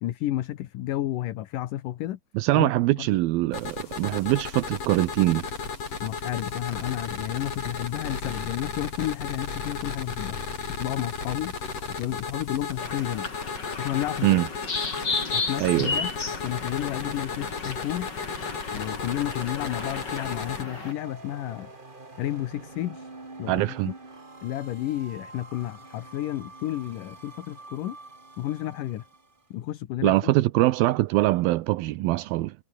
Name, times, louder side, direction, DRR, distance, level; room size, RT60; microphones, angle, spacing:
voice 1, 0.0-2.2 2.5-3.1 6.0-10.4 10.8-11.5 12.0-13.3 13.8-14.4 15.3-16.1 16.4-18.1 18.7-21.7 22.2-23.1 23.4-23.9 24.4-28.0 28.4-29.1 29.5-30.3, left 14 dB, 70° left, 2.6 m, -31 dB
voice 2, 2.4-5.5 14.2-14.5 15.6-16.0 23.5-23.9 30.0-32.5, right 18 dB, 80° right, 2.6 m, -23 dB
sound 1, 3.5-20.6, left 5 dB, 45° left, 5.0 m, -34 dB
sound 2, 12.8-20.9, left 4 dB, 30° left, 4.0 m, -34 dB
sound 3, 19.8-29.4, right 3 dB, 15° right, 2.0 m, -46 dB
omnidirectional pair, 4.2 m